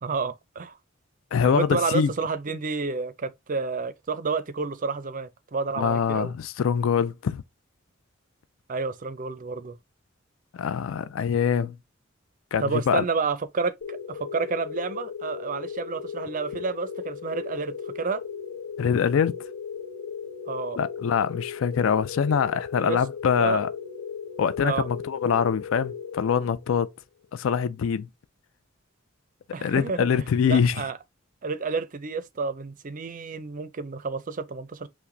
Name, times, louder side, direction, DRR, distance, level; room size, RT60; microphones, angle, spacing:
voice 1, 0.0-0.8 1.4-6.3 8.7-9.8 12.6-18.2 20.5-20.8 22.7-23.0 23.4-23.6 24.6-24.9 29.5-31.0 31.4-34.9, right 4 dB, 40° right, 0.5 m, -30 dB
voice 2, 1.3-2.1 5.8-7.4 10.5-11.8 12.5-13.0 18.8-19.3 20.8-23.7 24.4-26.9 27.3-28.1 29.6-30.8, left 7 dB, 75° left, 0.4 m, -24 dB
sound 1, 13.8-26.9, left 6 dB, 55° left, 0.8 m, -37 dB
5.7 x 2.1 x 3.7 m
head